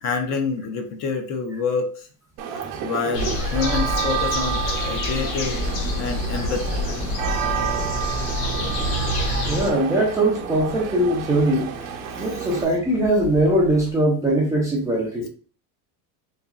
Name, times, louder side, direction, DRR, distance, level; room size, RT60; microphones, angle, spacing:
voice 1, 0.0-2.1 2.8-5.6 6.0-6.9 12.1-12.6, left 5 dB, 35° left, 5 dB, 0.6 m, -27 dB
sound 1, 2.4-12.6, right 9 dB, 65° right, 0.8 m, -30 dB
sound 2, 3.1-9.7, left 2 dB, 85° left, 1.3 m, -27 dB
sound 3, 5.3-13.9, right 2 dB, 60° left, 1.6 m, -37 dB
voice 2, 9.5-11.7 12.2-15.3, right 1 dB, 5° right, -5 dB, 0.4 m, -21 dB
4.1 x 2.9 x 2.4 m, 0.40 s
cardioid pair, 155°, 47 cm